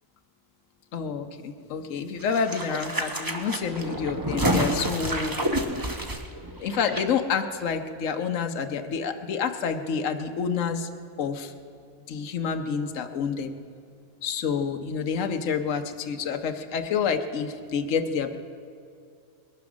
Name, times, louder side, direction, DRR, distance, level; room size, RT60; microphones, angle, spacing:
voice 1, 0.9-5.4 6.6-10.9 11.2-11.5 12.1-13.6 14.2-18.4, left 6 dB, 70° left, 6 dB, 1.2 m, -28 dB
sound 1, 2.2-7.0 7.3-7.4, right 1 dB, 20° right, 0.8 m, -29 dB
21.0 x 9.5 x 6.2 m, 2.4 s
omnidirectional pair, 1.4 m